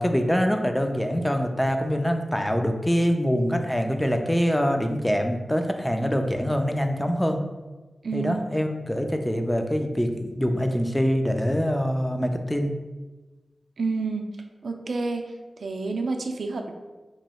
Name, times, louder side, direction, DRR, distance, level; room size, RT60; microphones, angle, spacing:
voice 1, 0.0-7.4 8.1-12.7, equal, 10° left, 5 dB, 0.4 m, -24 dB
voice 2, 8.0-8.3 13.8-14.2 14.6-15.3 15.6-16.7, right 4 dB, 80° right, 4 dB, 0.3 m, -29 dB
3.0 x 2.7 x 4.2 m, 1.2 s
wide cardioid pair, 75°, 0 cm